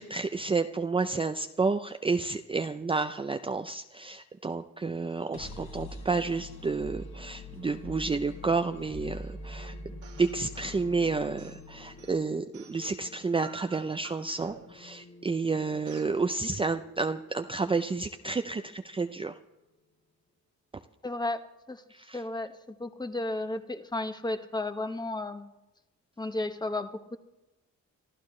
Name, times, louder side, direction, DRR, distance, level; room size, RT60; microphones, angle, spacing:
voice 1, 0.0-9.8 10.2-19.4 21.9-22.2, right 4 dB, 15° right, 7 dB, 0.6 m, -30 dB
sound 1, 5.0-18.9, left 2 dB, 70° left, 4.3 m, -46 dB
sound 2, 10.0-10.8 11.4-13.0 13.4-14.9 15.8-16.2, right 8 dB, 90° right, 2.5 m, -49 dB
voice 2, 21.0-21.8 22.1-25.5 26.2-27.2, left 2 dB, 15° left, 8 dB, 1.2 m, -33 dB
25.5 x 13.5 x 3.2 m, 0.98 s
cardioid pair, 90°, 30 cm